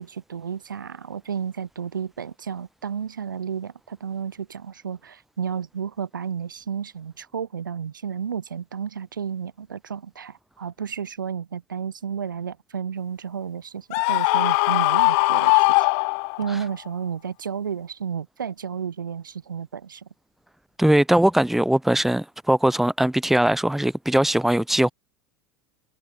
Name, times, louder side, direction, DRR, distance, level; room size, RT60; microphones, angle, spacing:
voice 1, 0.0-15.9 16.4-20.1, right 7 dB, 80° right, 1.8 m, -32 dB
Screaming, 13.9-16.6, left 39 dB, 55° left, 0.5 m, -20 dB
voice 2, 20.8-24.9, right 1 dB, ahead, 1.3 m, -20 dB
figure-of-eight pair, 80°, 11 cm